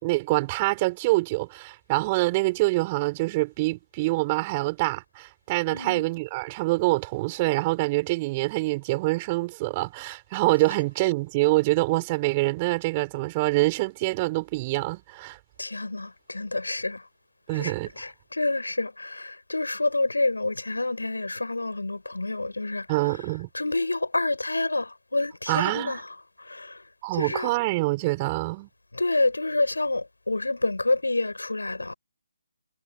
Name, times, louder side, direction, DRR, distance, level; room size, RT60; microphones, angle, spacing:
voice 1, 0.0-15.4 17.5-17.9 22.9-23.5 25.5-26.0 27.0-28.7, right 22 dB, 25° right, 5.6 m, -25 dB
voice 2, 5.7-6.0 15.6-17.0 17.5-22.9 23.5-26.0 26.4-26.8 27.1-27.5 28.9-31.9, left 2 dB, 75° left, 6.5 m, -28 dB
figure-of-eight pair, 145°, 0 cm